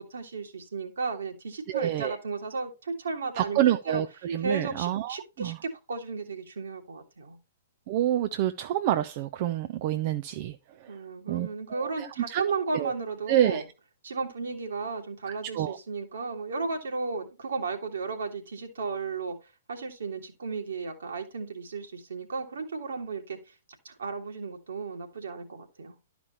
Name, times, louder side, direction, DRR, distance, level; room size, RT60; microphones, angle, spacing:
voice 1, 0.0-4.0 4.4-7.4 10.9-13.7 14.0-19.4 19.7-23.4 23.8-26.0, right 4 dB, 60° right, 2.0 m, -34 dB
voice 2, 1.7-2.2 3.4-5.6 7.9-10.5 11.3-12.4 12.7-12.9 13.3-13.6 15.5-15.8, right 12 dB, 40° right, 0.5 m, -27 dB
12.0 x 5.1 x 3.0 m
figure-of-eight pair, 115°, 0 cm